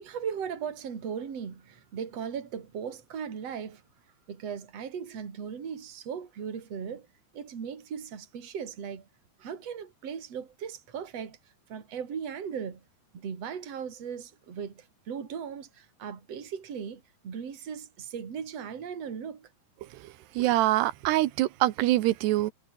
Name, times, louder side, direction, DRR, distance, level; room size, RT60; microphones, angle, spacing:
voice 1, 0.0-3.8 4.3-7.1 7.3-9.1 9.4-11.4 11.7-12.8 13.1-19.5, right 7 dB, 40° right, 4.0 m, -38 dB
voice 2, 20.4-22.5, right 16 dB, 90° right, 3.1 m, -24 dB
omnidirectional pair, 4.7 m